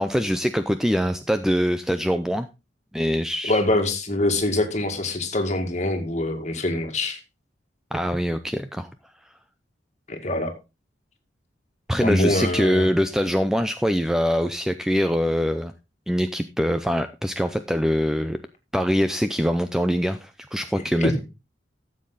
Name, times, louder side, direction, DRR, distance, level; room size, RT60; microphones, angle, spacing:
voice 1, 0.0-2.5 2.9-3.6 7.9-8.9 11.9-15.7 16.1-18.4 18.7-21.2, equal, 5° right, 9 dB, 0.5 m, -23 dB
voice 2, 3.5-7.2 10.1-10.5 12.0-12.9 21.0-21.1, left 1 dB, 35° left, 5 dB, 2.0 m, -24 dB
13.0 x 7.4 x 3.9 m, 0.27 s
head